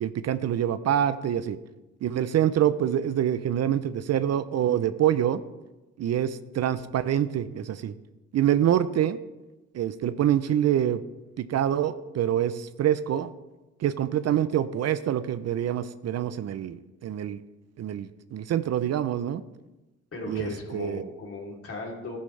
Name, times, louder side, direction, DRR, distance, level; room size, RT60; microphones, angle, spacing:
voice 1, 0.0-1.6 2.0-5.4 6.0-7.9 8.3-9.2 9.7-11.0 11.4-13.3 13.8-16.8 17.0-17.4 17.8-19.4 20.3-21.0, right 10 dB, 55° right, 14 dB, 0.6 m, -26 dB
voice 2, 20.1-22.2, left 2 dB, 45° left, -1 dB, 3.2 m, -37 dB
13.0 x 9.6 x 3.3 m, 1.0 s
cardioid pair, 90°, 30 cm